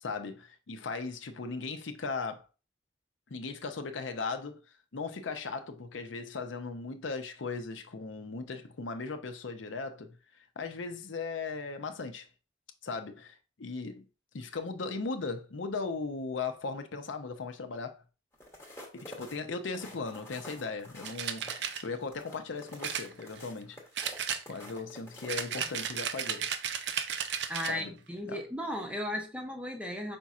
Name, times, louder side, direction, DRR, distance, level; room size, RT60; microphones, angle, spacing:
voice 1, 0.0-2.4 3.3-4.6 4.9-12.3 12.8-14.0 14.3-18.0 18.9-23.8 24.5-26.5 27.7-28.0 28.2-28.4, left 4 dB, 80° left, 0.7 m, -38 dB
sound 1, 18.3-26.5 27.0-27.2, left 1 dB, 15° left, 0.9 m, -49 dB
sound 2, 21.1-21.8 22.8-23.6 24.0-24.8 25.3-27.8, right 8 dB, 65° right, 0.5 m, -34 dB
voice 2, 27.5-30.2, left 1 dB, 5° right, 0.6 m, -36 dB
5.2 x 4.2 x 2.4 m
head